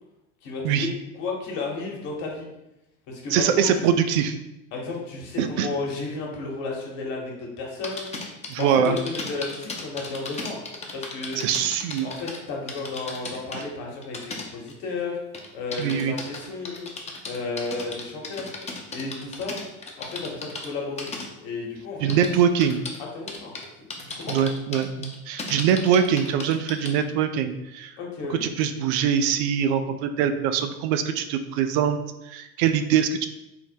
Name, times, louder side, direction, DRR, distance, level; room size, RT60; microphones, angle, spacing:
voice 1, 0.4-2.5 3.1-3.8 4.7-10.6 10.9-11.4 12.0-15.2 15.5-16.9 17.2-18.5 18.9-19.6 20.0-21.1 21.4-22.3 23.1-23.6 24.0-24.4 28.0-28.4, left 3 dB, 60° left, -1 dB, 1.2 m, -33 dB
voice 2, 3.3-4.4 5.4-5.7 8.5-9.0 11.4-12.1 13.5-13.6 15.8-16.1 22.0-22.8 24.3-27.9 28.4-32.0 32.3-33.3, right 8 dB, 60° right, 9 dB, 0.4 m, -23 dB
sound 1, 7.8-12.4 12.7-13.6 14.0-14.9 15.3-20.7 21.0-21.3 22.1-23.0 23.3-23.7 23.9-27.0, left 3 dB, 15° left, 0.6 m, -35 dB
3.7 x 2.1 x 4.3 m, 0.93 s
hypercardioid pair, 85°, 39 cm